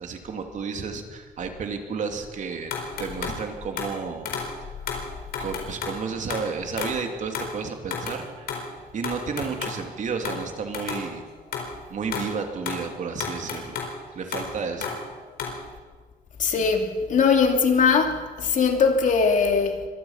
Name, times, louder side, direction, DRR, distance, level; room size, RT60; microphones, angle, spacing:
voice 1, 0.0-2.7 3.0-4.3 5.4-8.6 8.9-11.2 11.9-13.8 14.1-14.9, right 5 dB, 55° right, 2.9 m, -32 dB
sound 1, 2.7-3.4 3.8-4.0 4.3-4.6 4.9-6.0 6.3-7.0 7.3-7.6 7.9-8.2 8.5-9.8 10.3-10.5 10.7-11.1 11.5-11.7 12.1-12.3 12.6-14.0 14.3-15.6, left 6 dB, 80° left, 4.5 m, -32 dB
voice 2, 16.4-19.9, left 5 dB, 55° left, 2.8 m, -21 dB
24.0 x 19.0 x 5.8 m
cardioid pair, 115°, 15 cm